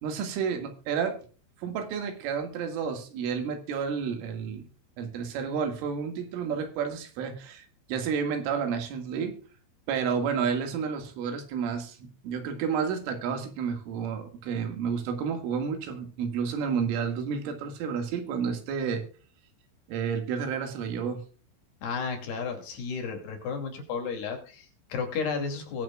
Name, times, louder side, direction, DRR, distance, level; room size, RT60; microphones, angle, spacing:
voice 1, 0.0-1.2 1.6-4.7 5.0-9.3 9.9-19.0 19.9-21.2, right 6 dB, 90° right, 6 dB, 4.5 m, -31 dB
voice 2, 21.8-25.8, left 5 dB, 60° left, 3 dB, 4.6 m, -33 dB
21.5 x 8.5 x 2.3 m, 0.37 s
omnidirectional pair, 5.5 m